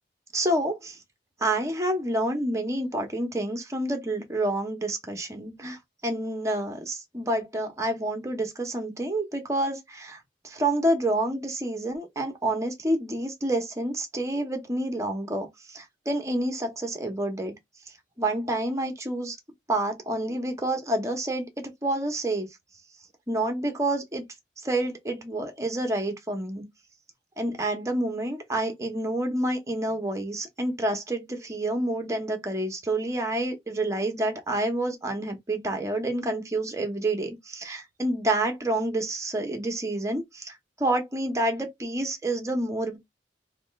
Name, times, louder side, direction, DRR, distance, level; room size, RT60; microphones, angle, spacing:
voice 1, 0.3-1.0 1.4-5.8 6.0-10.2 10.4-17.5 18.2-19.4 19.7-22.5 23.3-24.2 24.6-26.7 27.4-40.5 40.8-43.0, right 1 dB, 20° right, 0.9 m, -28 dB
3.0 x 2.3 x 3.1 m
head